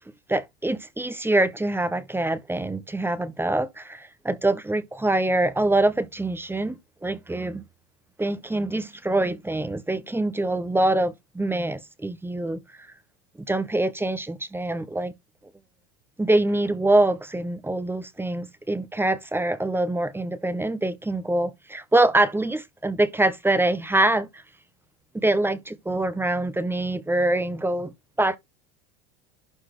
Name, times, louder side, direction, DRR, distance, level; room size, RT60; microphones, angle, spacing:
voice 1, 0.3-7.6 8.2-12.6 13.5-15.1 16.2-24.3 25.1-28.4, right 2 dB, 5° right, 0.8 m, -24 dB
11.5 x 4.0 x 3.1 m
supercardioid pair, 110°, 35 cm